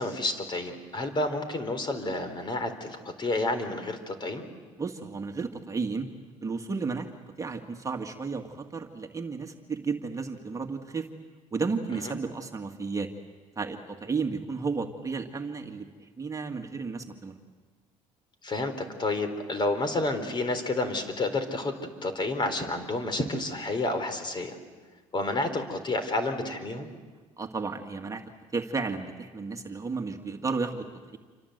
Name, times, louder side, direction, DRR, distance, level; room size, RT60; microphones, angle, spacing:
voice 1, 0.0-4.4 18.4-24.6 25.1-26.9, left 2 dB, 35° left, 9 dB, 4.0 m, -30 dB
voice 2, 4.8-6.1 6.4-7.1 7.4-11.1 11.5-13.1 13.6-17.4 27.4-28.2 28.5-30.9, right 4 dB, 25° right, 4 dB, 2.0 m, -33 dB
28.0 x 25.0 x 8.1 m, 1.4 s
supercardioid pair, 90°, 14 cm